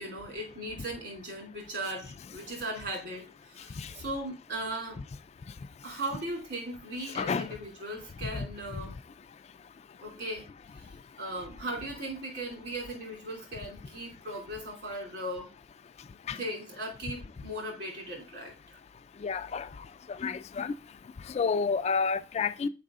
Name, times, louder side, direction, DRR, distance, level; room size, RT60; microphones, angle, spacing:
voice 1, 0.0-5.0 5.8-8.9 10.0-10.4 10.8-10.9 11.2-15.5 16.3-18.8, right 1 dB, 65° right, 2.9 m, -38 dB
voice 2, 7.2-7.5 8.3-8.5 16.3-16.4 19.2-19.7 20.1-20.7 21.3-22.7, left 5 dB, 35° left, 0.3 m, -30 dB
6.6 x 4.8 x 3.6 m
head